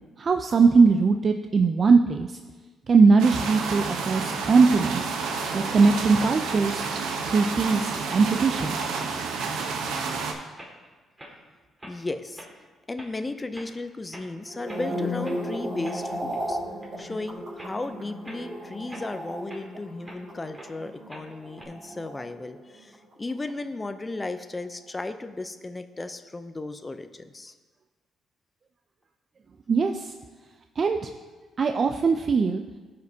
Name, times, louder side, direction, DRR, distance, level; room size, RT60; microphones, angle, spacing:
voice 1, 0.2-2.4 2.9-5.1 5.5-6.8 7.3-8.8 29.7-30.1 30.8-31.1 31.6-32.6, right 4 dB, 45° right, 5 dB, 0.4 m, -20 dB
sound 1, 3.2-10.3, right 4 dB, 90° right, 0.9 m, -30 dB
sound 2, 8.2-8.4 8.8-9.0 9.4-9.5 9.9-10.1 10.6-10.9 11.2-11.4 11.8-12.0 12.4-12.5 13.0-13.1 13.5-13.7 14.0-14.3 14.7-14.9 15.2-15.4 15.8-16.5 16.8-17.1 17.6-17.8 18.2-18.5 18.9-20.2 20.5-20.7 21.1-21.7, right 1 dB, 15° right, 2.0 m, -45 dB
voice 2, 11.8-12.5 12.9-16.6 17.0-27.5, left 2 dB, 20° left, 9 dB, 0.5 m, -35 dB
sound 3, 14.4-22.8 23.1-23.5, equal, 65° right, 2.6 m, -35 dB
15.0 x 5.1 x 2.8 m, 1.3 s
cardioid pair, 90°, 0 cm